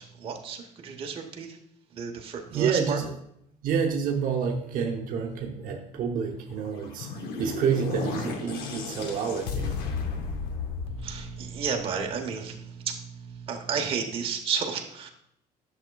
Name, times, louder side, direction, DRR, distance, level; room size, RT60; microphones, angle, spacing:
voice 1, 0.0-1.6 1.9-3.0 10.9-15.1, right 6 dB, 35° right, 1 dB, 1.0 m, -32 dB
voice 2, 2.5-3.1 3.6-9.8, right 6 dB, 60° right, 1 dB, 0.9 m, -28 dB
sound 1, 6.6-12.0, left 5 dB, 85° left, 0.9 m, -34 dB
10.5 x 6.5 x 2.3 m, 0.74 s
cardioid pair, 155°, 16 cm